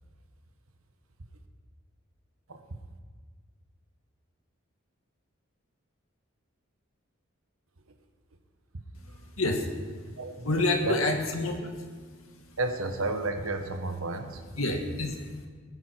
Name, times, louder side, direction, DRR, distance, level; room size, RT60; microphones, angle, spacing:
voice 1, 8.9-12.6 14.5-15.5, left 2 dB, 80° left, 3 dB, 1.8 m, -30 dB
voice 2, 10.2-11.0 12.6-14.4, right 2 dB, 75° right, 6 dB, 1.3 m, -32 dB
20.5 x 10.5 x 4.6 m, 1.5 s
head